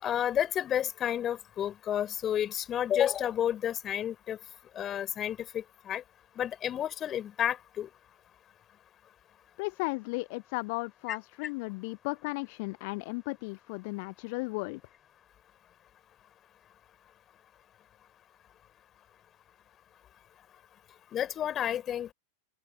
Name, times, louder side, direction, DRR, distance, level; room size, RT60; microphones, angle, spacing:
voice 1, 0.0-4.4 4.8-6.0 6.4-7.9 11.1-11.2 21.1-22.1, left 10 dB, 30° left, 4.3 m, -31 dB
voice 2, 9.6-14.8, left 29 dB, 45° left, 0.9 m, -35 dB
open air
figure-of-eight pair, 90°, 0 cm